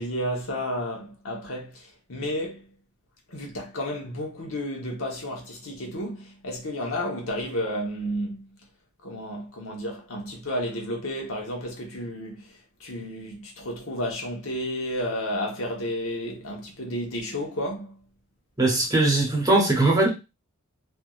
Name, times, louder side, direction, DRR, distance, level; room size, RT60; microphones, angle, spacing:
voice 1, 0.0-2.7 3.3-8.5 9.0-18.0, equal, 75° left, 1.1 m, -32 dB
voice 2, 18.6-20.1, right 2 dB, 15° right, 0.9 m, -20 dB
3.4 x 2.7 x 2.4 m
head